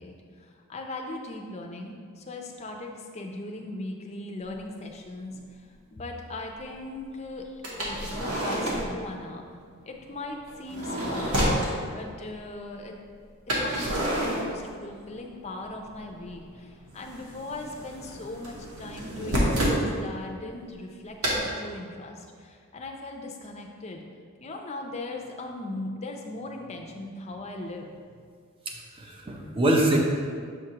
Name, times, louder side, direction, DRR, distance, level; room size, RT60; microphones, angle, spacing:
voice 1, 0.0-9.4 9.8-11.4 11.8-13.0 13.5-24.0 24.4-27.9, left 2 dB, 30° left, 2 dB, 0.5 m, -39 dB
sound 1, 4.5-4.6 5.3-5.4 7.6-9.0 10.5-11.7 13.5-15.2 15.4-16.3 16.5-19.8 21.2-21.4, equal, 85° right, 1.3 m, -29 dB
voice 2, 28.7-30.0, right 1 dB, 25° right, 0 dB, 0.6 m, -24 dB
7.0 x 4.7 x 2.9 m, 2.1 s
head